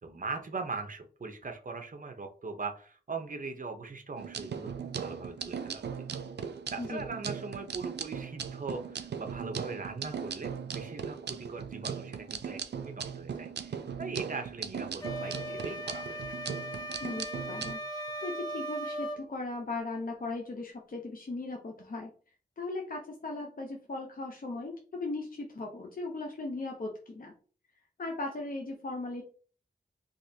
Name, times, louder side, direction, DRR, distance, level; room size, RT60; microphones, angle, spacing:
voice 1, 0.0-5.9 6.7-16.3, right 4 dB, 50° right, 5 dB, 0.7 m, -40 dB
sound 1, 4.2-17.7, right 7 dB, 85° right, 0.4 m, -38 dB
sound 2, 15.0-19.2, equal, 25° left, 1.3 m, -38 dB
voice 2, 17.0-22.1 22.6-27.3 28.0-29.2, left 2 dB, 55° left, 1 dB, 0.7 m, -38 dB
3.9 x 2.9 x 2.7 m, 0.40 s
wide cardioid pair, 75°, 17 cm